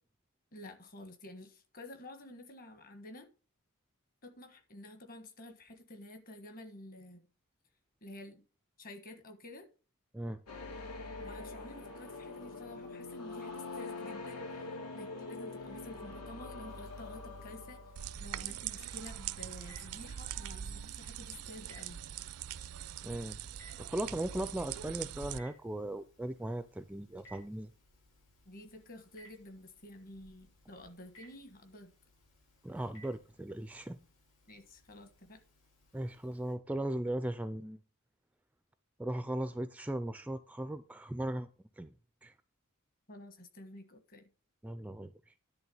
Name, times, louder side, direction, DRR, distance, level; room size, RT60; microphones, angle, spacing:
voice 1, 0.5-3.3 4.2-7.3 8.0-8.4 8.8-9.7 11.2-17.8 18.2-22.0 28.4-31.9 34.5-35.4 43.1-44.3, left 1 dB, 40° left, 1.4 m, -50 dB
sound 1, 10.5-18.4, left 3 dB, 85° left, 1.9 m, -44 dB
Telephone, 16.7-36.5, right 1 dB, 60° left, 5.0 m, -63 dB
sound 2, 18.0-25.4, right 10 dB, 80° right, 0.4 m, -42 dB
voice 2, 23.0-23.4 23.8-27.7 32.6-34.0 35.9-37.8 39.0-41.5 41.8-41.9 42.2-42.3 44.6-45.1, right 1 dB, 5° right, 0.3 m, -37 dB
10.5 x 3.6 x 7.0 m
head